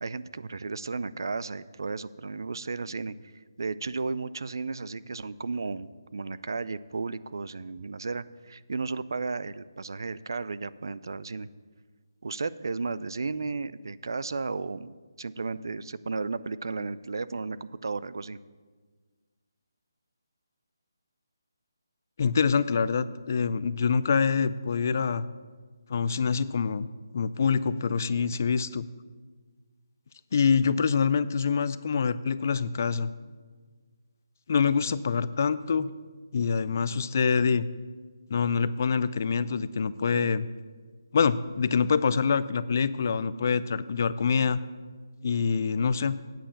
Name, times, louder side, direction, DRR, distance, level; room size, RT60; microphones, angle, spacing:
voice 1, 0.0-3.1 3.6-11.5 12.2-18.4, right 4 dB, 70° right, 17 dB, 0.4 m, -34 dB
voice 2, 22.2-25.2 25.9-26.9 27.1-28.9 30.3-33.1 34.5-35.9 36.3-37.7 38.3-40.5 41.1-44.6 45.2-46.2, left 5 dB, 40° left, 16 dB, 0.3 m, -25 dB
8.7 x 5.6 x 7.1 m, 1.5 s
hypercardioid pair, 165°, 2 cm